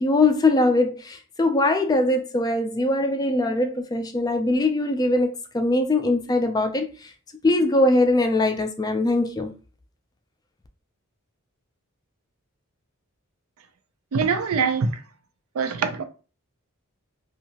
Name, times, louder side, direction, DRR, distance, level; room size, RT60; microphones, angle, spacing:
voice 1, 0.0-7.1 7.4-9.5, left 2 dB, 20° left, 0.3 m, -21 dB
voice 2, 14.1-14.9 15.6-16.0, right 5 dB, 90° right, 0.4 m, -23 dB
2.7 x 2.4 x 2.8 m
head